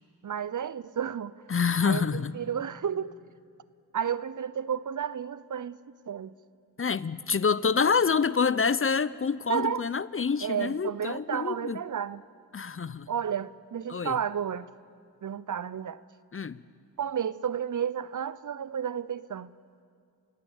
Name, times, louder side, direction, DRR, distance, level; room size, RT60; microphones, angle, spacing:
voice 1, 0.2-1.4 1.8-3.2 3.9-5.8 6.1-6.3 9.5-9.9 10.4-12.2 13.1-14.7 15.2-16.0 17.0-19.5, right 8 dB, 50° right, 0.7 m, -32 dB
voice 2, 1.5-2.3 6.8-11.8 12.5-13.1 13.9-14.2 16.3-16.6, left 5 dB, 35° left, 0.6 m, -27 dB
28.0 x 16.5 x 7.2 m
cardioid pair, 55°, 40 cm